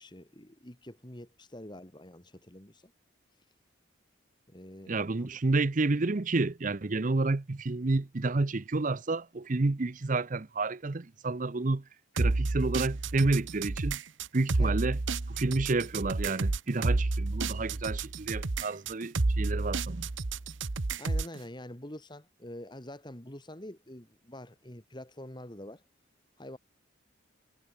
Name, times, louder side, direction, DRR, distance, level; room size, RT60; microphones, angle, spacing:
voice 1, 0.0-2.9 4.5-5.4 14.6-14.8 16.9-17.0 21.0-25.8 26.4-26.6, left 1 dB, 20° left, 2.1 m, -46 dB
voice 2, 4.9-11.8 12.2-14.0 14.3-15.0 15.3-20.1, right 3 dB, 40° right, 0.6 m, -30 dB
sound 1, 12.2-21.4, right 3 dB, 70° right, 1.0 m, -30 dB
head